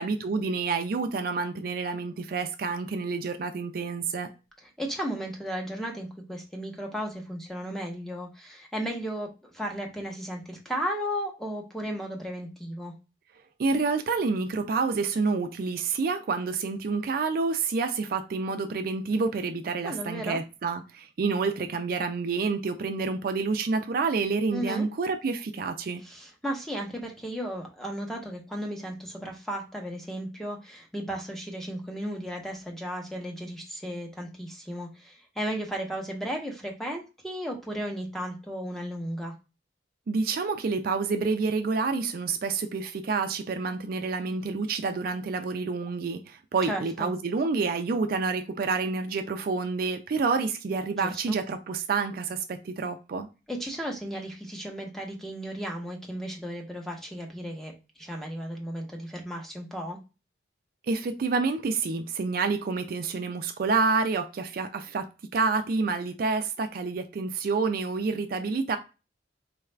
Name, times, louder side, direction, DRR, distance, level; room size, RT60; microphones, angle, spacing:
voice 1, 0.0-4.3 13.6-26.0 40.1-53.3 60.9-68.8, right 4 dB, 55° right, 0.4 m, -28 dB
voice 2, 4.8-12.9 19.8-20.4 24.5-24.9 26.0-39.3 46.7-47.1 50.9-51.4 53.5-57.7 58.0-60.0, equal, ahead, 0.8 m, -35 dB
4.0 x 2.4 x 3.2 m
head